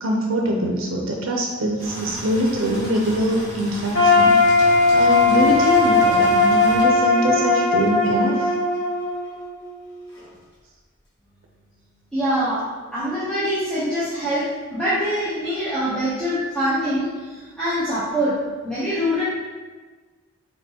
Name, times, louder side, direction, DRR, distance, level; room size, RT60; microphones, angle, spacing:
voice 1, 0.0-4.4 4.9-8.5, equal, 75° right, 0 dB, 0.6 m, -23 dB
sound 1, 1.8-6.8, equal, 20° left, 1.2 m, -35 dB
sound 2, 3.9-9.9, left 3 dB, 55° left, 1.5 m, -18 dB
voice 2, 12.1-12.6 12.9-18.4 18.6-19.2, equal, 5° left, -13 dB, 0.8 m, -24 dB
4.2 x 3.9 x 2.8 m, 1.4 s
head